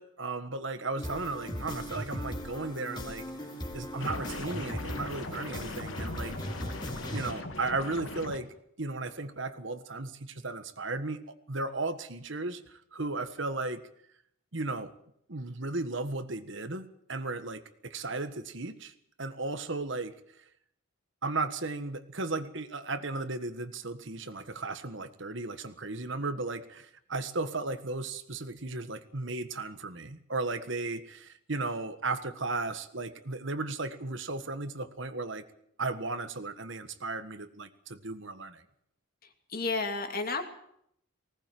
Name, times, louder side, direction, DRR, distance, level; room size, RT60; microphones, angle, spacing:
voice 1, 0.0-3.3 3.7-6.7 7.1-8.5 8.8-13.8 14.5-14.9 15.3-18.9 19.2-20.2 21.2-35.4 35.8-38.6, right 3 dB, 60° right, 11 dB, 1.5 m, -35 dB
sound 1, 1.0-7.3, equal, 20° left, 3.0 m, -38 dB
sound 2, 4.0-8.4, left 2 dB, 70° left, 2.1 m, -40 dB
voice 2, 39.5-40.4, left 3 dB, 45° left, 5 dB, 2.7 m, -31 dB
19.5 x 18.5 x 7.7 m, 0.72 s
head